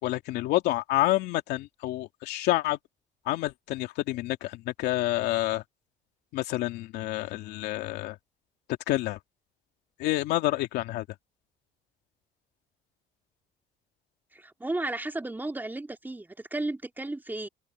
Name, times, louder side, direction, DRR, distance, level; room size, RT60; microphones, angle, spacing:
voice 1, 0.0-2.8 3.3-5.6 6.3-8.2 8.9-9.2 10.0-11.0, left 16 dB, 85° left, 2.6 m, -28 dB
voice 2, 14.3-17.5, right 2 dB, 10° right, 2.5 m, -34 dB
cardioid pair, 110°, 17 cm